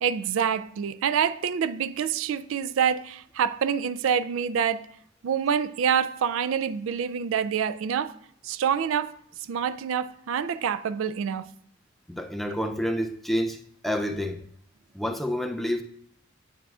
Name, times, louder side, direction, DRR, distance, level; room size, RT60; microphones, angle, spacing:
voice 1, 0.0-4.9 5.2-8.1 8.4-9.2 9.5-11.5, right 7 dB, 80° right, 0.3 m, -26 dB
voice 2, 12.1-14.4 14.9-15.8, equal, ahead, 0.4 m, -29 dB
9.1 x 6.0 x 2.4 m
head